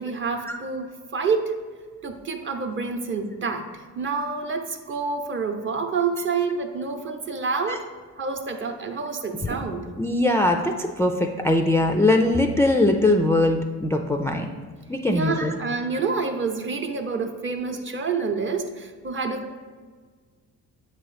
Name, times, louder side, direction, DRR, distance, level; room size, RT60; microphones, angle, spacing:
voice 1, 0.0-1.5 2.0-7.8 8.2-9.9 15.1-19.6, right 4 dB, 40° right, 5 dB, 0.7 m, -28 dB
voice 2, 10.0-14.5 14.9-15.5, left 2 dB, 10° left, 2 dB, 0.3 m, -21 dB
7.6 x 3.0 x 4.8 m, 1.5 s
cardioid pair, 90°, 30 cm